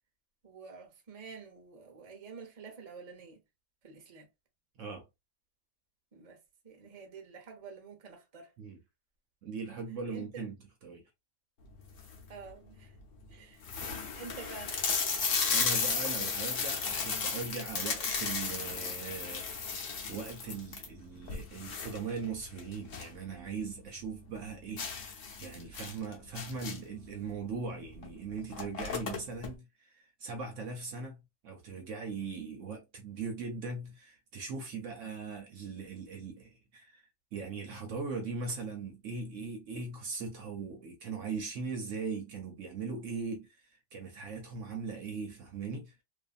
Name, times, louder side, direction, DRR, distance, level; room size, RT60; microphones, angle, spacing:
voice 1, 0.4-3.4 3.8-4.3 6.1-6.4 6.6-8.5 10.1-10.4 12.3-12.9 13.3-13.6 14.1-14.8, right 5 dB, 40° right, 0.6 m, -48 dB
voice 2, 9.4-10.5 10.8-11.0 15.5-37.0 37.3-46.0, right 4 dB, 65° right, 0.8 m, -40 dB
sound 1, 11.8-12.3 12.9-13.0 13.2-13.3 13.6-23.2 23.5-23.6 24.0-24.1 24.8-27.0 27.9-28.1 28.3-29.5, left 5 dB, 60° left, 1.0 m, -34 dB
2.6 x 2.5 x 2.4 m
omnidirectional pair, 1.7 m